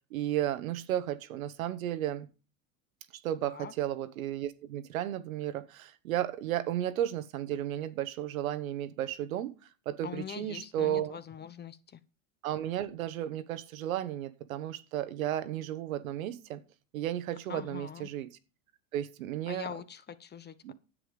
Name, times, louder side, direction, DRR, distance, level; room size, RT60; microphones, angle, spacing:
voice 1, 0.1-2.3 3.2-9.5 9.8-11.2 12.4-16.6 16.9-18.3 18.9-19.7 20.6-20.7, right 12 dB, 80° right, 1.3 m, -33 dB
voice 2, 3.4-3.7 10.0-12.0 17.5-18.1 19.5-20.7, left 8 dB, 25° left, 0.9 m, -43 dB
9.9 x 7.9 x 5.1 m
hypercardioid pair, 95°, 41 cm